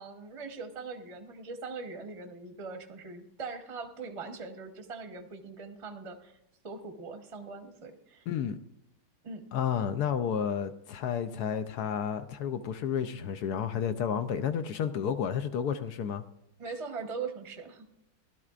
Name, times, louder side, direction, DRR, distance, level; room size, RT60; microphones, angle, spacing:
voice 1, 0.0-6.4 6.6-8.2 9.2-9.4 16.6-17.9, right 4 dB, 25° right, 0.7 m, -41 dB
voice 2, 8.3-8.6 9.5-16.2, left 8 dB, 70° left, 0.9 m, -31 dB
17.0 x 12.0 x 2.5 m
omnidirectional pair, 2.2 m